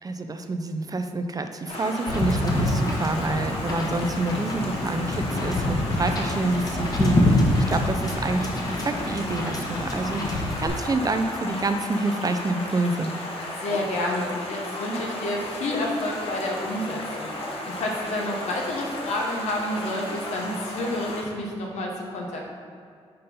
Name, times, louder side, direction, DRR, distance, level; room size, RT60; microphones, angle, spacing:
voice 1, 0.0-13.3, right 2 dB, 35° right, 7 dB, 0.5 m, -28 dB
Stream, 1.7-21.2, left 1 dB, 60° left, 1.3 m, -34 dB
Wind / Boat Water vehicle, 2.1-10.7, left 1 dB, 35° left, 1.2 m, -26 dB
voice 2, 13.6-22.5, left 1 dB, 80° left, -1 dB, 1.2 m, -29 dB
5.4 x 4.2 x 5.4 m, 2.4 s
cardioid pair, 70°, 11 cm